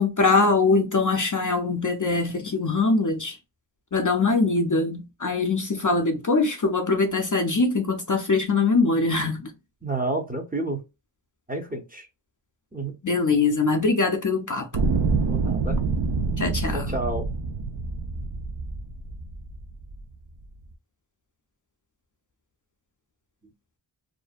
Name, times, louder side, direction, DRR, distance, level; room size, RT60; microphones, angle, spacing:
voice 1, 0.0-3.4 3.9-9.5 13.0-14.7 16.4-17.0, left 3 dB, 40° left, 0.5 m, -22 dB
voice 2, 9.8-10.8 11.5-12.1 12.7-13.0 15.3-15.8 16.7-17.3, right 2 dB, 20° right, 0.6 m, -30 dB
sound 1, 14.7-20.0 20.7-20.8, right 4 dB, 60° right, 0.5 m, -27 dB
2.5 x 2.1 x 2.4 m
wide cardioid pair, 45°, 49 cm